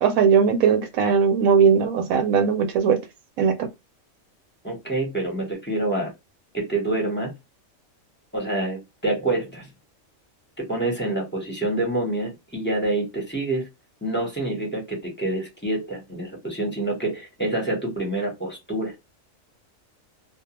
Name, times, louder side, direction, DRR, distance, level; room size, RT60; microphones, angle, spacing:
voice 1, 0.0-3.0 3.4-3.7, right 6 dB, 85° right, 1.0 m, -19 dB
voice 2, 4.6-6.1 6.5-7.3 8.3-9.7 10.6-13.7 14.0-18.9, right 2 dB, 10° left, 0.7 m, -27 dB
2.3 x 2.1 x 2.9 m
omnidirectional pair, 1.4 m